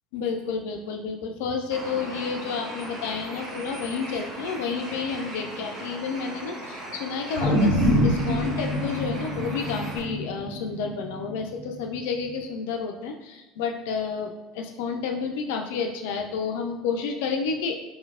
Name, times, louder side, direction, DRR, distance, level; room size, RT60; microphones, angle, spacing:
voice 1, 0.1-17.8, left 5 dB, 65° left, 3 dB, 0.3 m, -30 dB
Bird, 1.7-10.0, right 1 dB, 50° right, 1.1 m, -38 dB
sound 1, 7.3-11.8 12.3-12.4, equal, 75° right, 1.5 m, -25 dB
4.1 x 3.1 x 2.4 m, 1.1 s
figure-of-eight pair, 70°, 0 cm